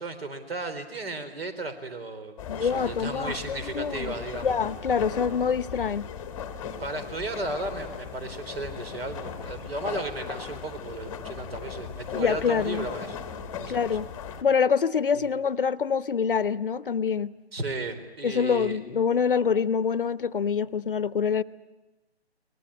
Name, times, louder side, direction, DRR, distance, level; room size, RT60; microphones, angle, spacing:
voice 1, 0.0-4.5 6.8-13.8 15.2-15.3 17.5-18.8, right 2 dB, 65° right, 4.0 m, -35 dB
sound 1, 2.4-14.4, left 7 dB, 10° left, 1.2 m, -38 dB
voice 2, 2.5-4.1 4.4-6.1 12.1-12.9 13.7-14.1 14.4-17.3 18.2-21.4, left 6 dB, 55° left, 0.8 m, -25 dB
23.5 x 20.0 x 9.9 m
figure-of-eight pair, 150°, 33 cm